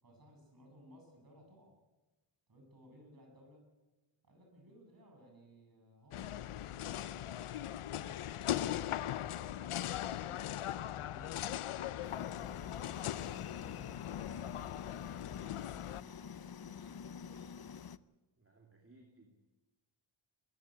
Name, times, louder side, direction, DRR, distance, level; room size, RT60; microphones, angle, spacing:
voice 1, 0.0-1.8 2.5-3.7 4.2-7.3 15.9-17.5, equal, 45° right, 2 dB, 7.8 m, -60 dB
sound 1, 6.1-16.0, left 12 dB, 80° left, 0.7 m, -39 dB
sound 2, 10.7-12.0 12.4-12.6 13.1-14.4 14.8-14.9, left 2 dB, 15° left, 3.6 m, -60 dB
sound 3, 12.0-18.0, left 7 dB, 50° left, 0.7 m, -48 dB
voice 2, 18.4-19.3, right 2 dB, 25° right, 1 dB, 2.7 m, -62 dB
22.0 x 14.5 x 10.0 m, 1.1 s
wide cardioid pair, 135°, 49 cm